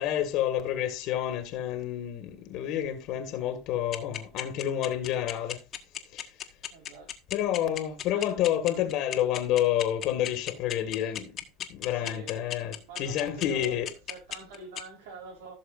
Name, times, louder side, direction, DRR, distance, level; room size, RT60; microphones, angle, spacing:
voice 1, 0.0-5.6 6.1-6.4 7.3-11.4 11.7-13.9, left 11 dB, 55° left, 1.8 m, -29 dB
sound 1, 3.9-14.8, left 11 dB, 40° left, 1.5 m, -34 dB
voice 2, 6.7-7.1 8.1-8.3 8.7-8.9 11.9-13.7 14.1-15.5, right 4 dB, 85° right, 4.5 m, -46 dB
15.5 x 6.6 x 2.6 m
supercardioid pair, 130°, 0 cm